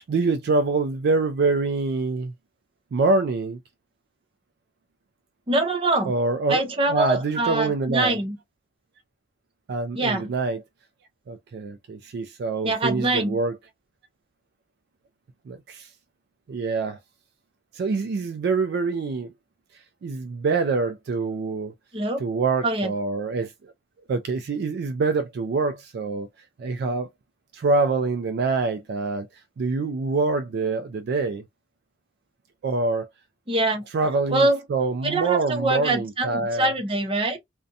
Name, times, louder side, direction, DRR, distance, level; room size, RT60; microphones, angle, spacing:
voice 1, 0.0-2.3 2.9-3.6 6.1-8.2 9.7-10.6 11.3-13.5 15.5-15.9 16.5-17.0 17.7-19.3 20.0-21.7 22.2-23.7 24.1-26.3 26.6-27.1 27.5-29.3 29.6-31.4 32.6-33.1 33.9-36.7, right 3 dB, 60° right, 0.3 m, -25 dB
voice 2, 5.5-6.1 6.5-8.4 9.9-10.3 12.6-13.4 21.9-22.2 22.6-22.9 33.5-33.9 34.3-34.6 35.0-37.4, right 2 dB, 30° right, 0.6 m, -24 dB
2.6 x 2.1 x 2.5 m
head